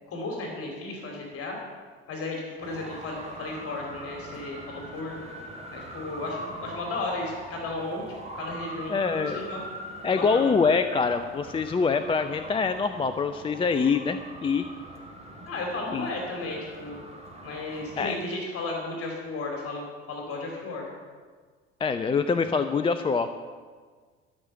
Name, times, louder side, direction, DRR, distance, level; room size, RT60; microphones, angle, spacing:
voice 1, 0.1-1.6 2.1-5.3 5.7-8.1 8.3-9.6 10.1-10.5 15.5-17.0 17.4-20.9, left 2 dB, 45° left, 0 dB, 2.9 m, -34 dB
Traffic noise roadway noise, 2.6-18.1, right 1 dB, 20° right, 2.7 m, -42 dB
voice 2, 8.9-9.4 10.0-14.7 15.9-16.1 18.0-18.1 21.8-23.3, left 5 dB, 15° left, 10 dB, 0.5 m, -25 dB
13.0 x 6.5 x 8.2 m, 1.5 s
figure-of-eight pair, 60°, 33 cm